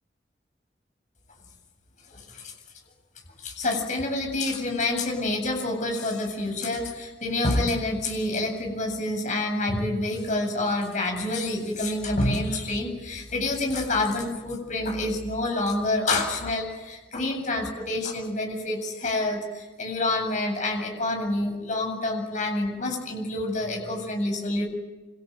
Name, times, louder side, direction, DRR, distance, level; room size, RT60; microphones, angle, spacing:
voice 1, 2.1-2.5 3.4-24.6, left 2 dB, 45° left, 2 dB, 7.9 m, -27 dB
27.5 x 26.5 x 8.1 m, 1.2 s
head